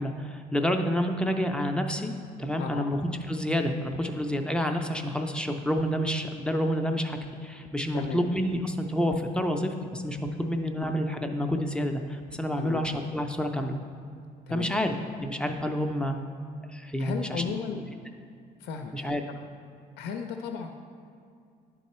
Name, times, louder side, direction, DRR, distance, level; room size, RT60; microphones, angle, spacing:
voice 1, 0.0-2.1 2.4-3.0 3.3-13.8 14.5-16.2 16.7-17.4 18.9-19.2, equal, 5° left, 4 dB, 0.4 m, -29 dB
voice 2, 17.0-17.8 18.6-19.4 20.0-20.8, left 7 dB, 85° left, 5 dB, 0.5 m, -35 dB
10.5 x 3.6 x 4.2 m, 2.3 s
cardioid pair, 110°, 17 cm